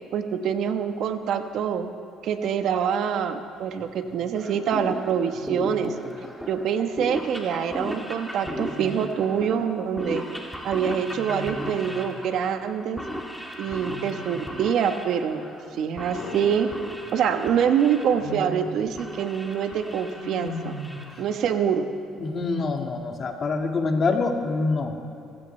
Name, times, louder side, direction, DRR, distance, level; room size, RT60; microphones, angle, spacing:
voice 1, 0.1-1.9 2.2-5.9 6.5-10.2 10.6-13.0 13.6-15.4 15.8-16.7 17.1-20.7 21.2-21.9, right 8 dB, 70° right, 7 dB, 1.1 m, -25 dB
Wild animals, 3.7-4.1 5.3-6.0 8.4-9.3 11.1-12.2 13.6-14.6 16.1-17.2 18.0-18.9 20.2-21.2, left 1 dB, 75° left, 3.4 m, -39 dB
sound 1, 4.4-21.8, equal, ahead, 2.3 m, -37 dB
voice 2, 22.2-25.0, left 3 dB, 45° left, 3 dB, 1.8 m, -25 dB
25.0 x 16.0 x 3.3 m, 2.7 s
cardioid pair, 90°, 0 cm